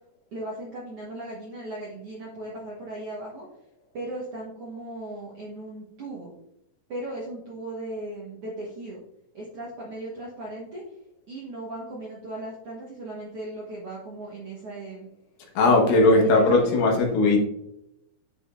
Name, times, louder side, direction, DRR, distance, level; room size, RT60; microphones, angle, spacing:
voice 1, 0.3-3.5 3.9-6.3 6.9-9.0 9.3-11.0 11.3-15.1 15.7-16.7, right 1 dB, 65° right, -4 dB, 1.4 m, -37 dB
voice 2, 15.5-17.4, left 2 dB, 75° left, 0 dB, 3.0 m, -18 dB
9.5 x 5.1 x 2.5 m, 0.84 s
omnidirectional pair, 4.3 m